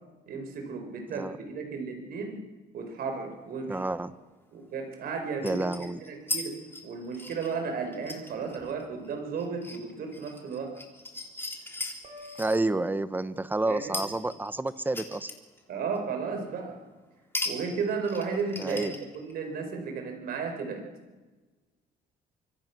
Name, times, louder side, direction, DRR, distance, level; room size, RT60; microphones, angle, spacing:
voice 1, 0.3-2.4 2.7-3.8 4.5-5.7 6.0-10.8 13.6-14.0 15.7-16.8 17.5-20.9, right 5 dB, 60° right, 5 dB, 5.3 m, -34 dB
sound 1, 3.3-3.4 5.4-6.5 6.7-12.6 13.9-15.6 16.0-16.1 17.3-17.6 17.8-19.4, left 2 dB, 15° left, 3.4 m, -37 dB
voice 2, 3.7-4.1 5.4-6.0 12.4-15.3 18.6-18.9, right 2 dB, 10° right, 13 dB, 1.1 m, -29 dB
sound 2, 12.0-13.9, left 2 dB, 45° right, 5.0 m, -51 dB
25.0 x 24.0 x 6.2 m, 1.3 s
cardioid pair, 110°, 17 cm